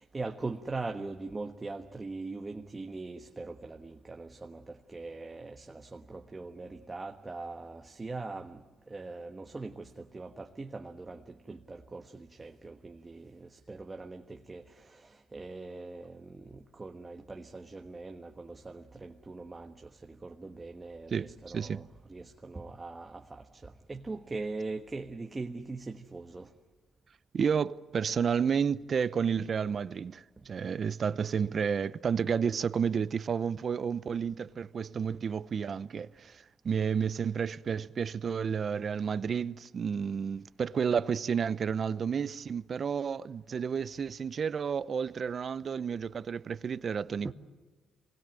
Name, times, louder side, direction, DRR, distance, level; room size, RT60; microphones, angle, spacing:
voice 1, 0.0-26.5 47.2-47.3, right 3 dB, 25° right, 1.3 m, -41 dB
voice 2, 21.1-21.8 27.3-47.3, right 6 dB, 50° right, 0.8 m, -31 dB
24.5 x 20.5 x 9.0 m
cardioid pair, 90°, 0 cm